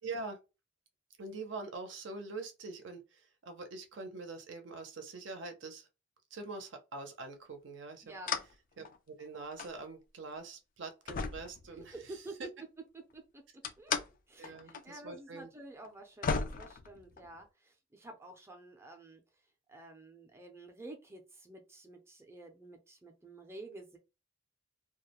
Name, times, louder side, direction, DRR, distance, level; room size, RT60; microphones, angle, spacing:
voice 1, 0.0-0.4 1.2-5.9 6.3-8.1 8.8-12.5 14.4-15.5, right 3 dB, 70° right, 0.5 m, -44 dB
voice 2, 8.0-8.4 11.8-11.9 12.1-12.4 12.9-13.4 13.8-13.9 14.3-19.2 19.7-24.0, right 2 dB, 15° right, 0.5 m, -50 dB
sound 1, 8.3-8.5 8.8-9.8 10.3-10.4 11.1-12.2 13.6-14.1 14.4-14.8 15.1-15.2 15.8-15.9 16.2-17.4, left 5 dB, 45° left, 0.3 m, -36 dB
2.3 x 2.0 x 2.8 m
head